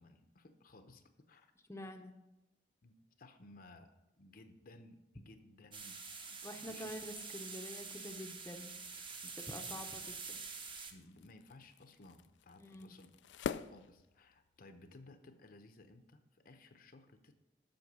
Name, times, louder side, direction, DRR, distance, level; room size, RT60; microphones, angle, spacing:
voice 1, 0.0-1.5 2.8-3.9 4.2-6.0 6.3-6.9 9.6-9.9 10.9-13.1 13.5-17.3, left 2 dB, 55° left, 8 dB, 0.7 m, -58 dB
voice 2, 1.7-2.1 6.4-8.7 9.2-10.4 12.6-12.9, left 1 dB, 15° left, 4 dB, 0.7 m, -47 dB
sound 1, 5.7-10.9, right 4 dB, 30° right, 0.9 m, -46 dB
sound 2, 8.7-14.7, left 6 dB, 90° left, 0.3 m, -48 dB
7.8 x 5.8 x 6.8 m, 0.97 s
head